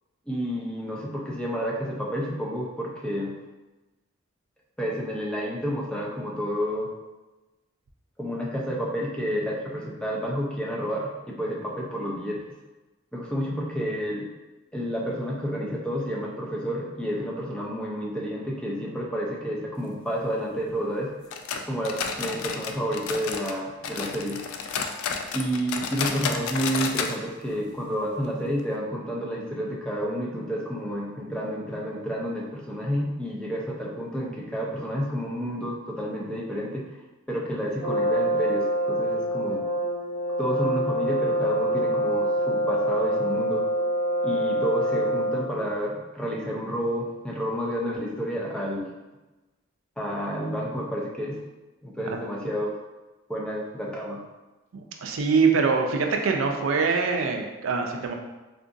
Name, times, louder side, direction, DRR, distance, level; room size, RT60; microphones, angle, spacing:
voice 1, 0.3-3.4 4.8-6.9 8.2-12.4 13.1-14.3 14.7-21.1 21.6-24.4 25.3-37.0 37.3-39.6 40.4-43.6 44.2-48.9 50.0-51.4 51.8-52.8 53.3-54.2, equal, 5° left, -4 dB, 0.4 m, -30 dB
sound 1, 21.3-23.6 23.8-27.2 27.4-27.5 27.9-28.0 28.6-28.7, left 5 dB, 85° left, 0.3 m, -31 dB
Brass instrument, 37.8-45.6, right 1 dB, 30° left, 1.0 m, -25 dB
voice 2, 54.7-58.1, right 5 dB, 70° right, 3 dB, 0.4 m, -24 dB
3.7 x 2.5 x 2.5 m, 1.1 s
head